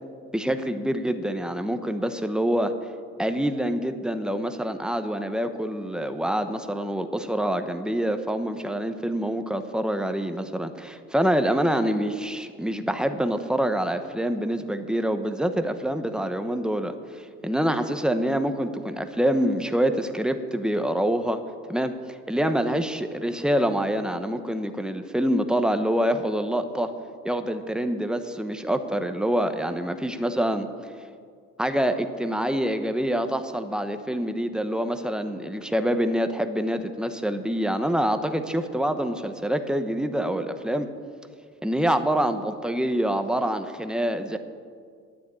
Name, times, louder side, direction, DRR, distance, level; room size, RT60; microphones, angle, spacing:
voice 1, 0.3-2.7 3.2-21.4 21.7-21.9 22.3-26.9 27.2-30.7 31.6-40.9 41.6-44.4, equal, 5° right, 8 dB, 1.0 m, -26 dB
11.0 x 9.5 x 8.7 m, 2.1 s
cardioid pair, 90°, 30 cm